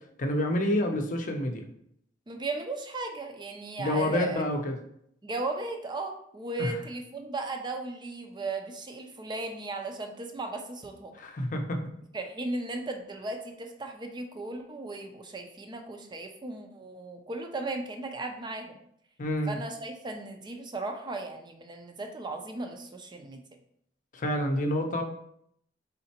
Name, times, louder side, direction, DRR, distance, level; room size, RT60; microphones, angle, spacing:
voice 1, 0.2-1.7 3.8-4.8 6.6-6.8 11.1-11.8 19.2-19.6 24.1-25.0, left 1 dB, 45° left, 4 dB, 0.6 m, -28 dB
voice 2, 2.3-4.4 5.2-11.1 12.1-18.8 19.5-23.4, right 2 dB, 25° right, 4 dB, 0.5 m, -36 dB
4.2 x 3.8 x 2.9 m, 0.71 s
head